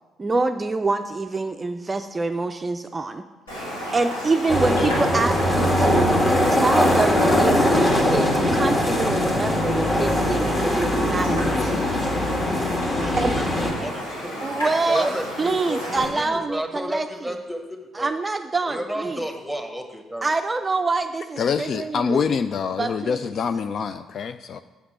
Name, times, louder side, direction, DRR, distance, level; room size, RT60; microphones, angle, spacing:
voice 1, 0.2-3.2 3.9-6.1 6.5-11.9 13.2-13.3 14.4-15.1 15.4-17.4 17.9-19.2 20.2-22.2 22.8-23.2, right 3 dB, 25° right, 7 dB, 0.4 m, -26 dB
Raindrop, 3.5-16.0, equal, 85° left, 2.6 m, -33 dB
sound 1, 4.5-13.7, left 1 dB, 25° left, 1.9 m, -21 dB
voice 2, 12.9-13.4 13.8-14.5 14.9-18.1 18.7-20.3, equal, 5° left, 4 dB, 1.5 m, -32 dB
voice 3, 21.4-24.6, left 6 dB, 45° left, 11 dB, 0.3 m, -25 dB
7.9 x 5.7 x 7.5 m, 1.2 s
figure-of-eight pair, 45°, 0 cm